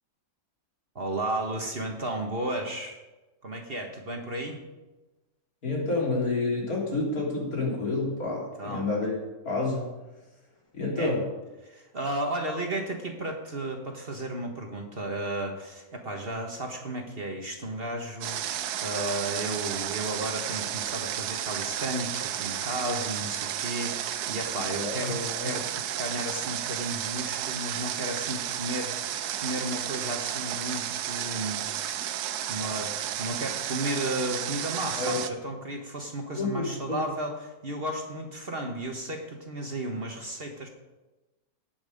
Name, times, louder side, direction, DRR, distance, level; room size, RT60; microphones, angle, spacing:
voice 1, 0.9-3.0 3.4-4.6 8.6-8.9 11.0-11.1 11.6-31.6 32.5-40.7, right 1 dB, 40° right, 2 dB, 1.4 m, -34 dB
voice 2, 5.6-9.1 9.5-9.9 10.7-11.3 24.7-25.5 34.9-35.2 36.4-37.0, left 3 dB, 70° left, -4 dB, 3.7 m, -29 dB
Water, 18.2-35.3, right 11 dB, 85° right, 1.2 m, -32 dB
17.5 x 6.1 x 5.3 m, 1.1 s
omnidirectional pair, 1.6 m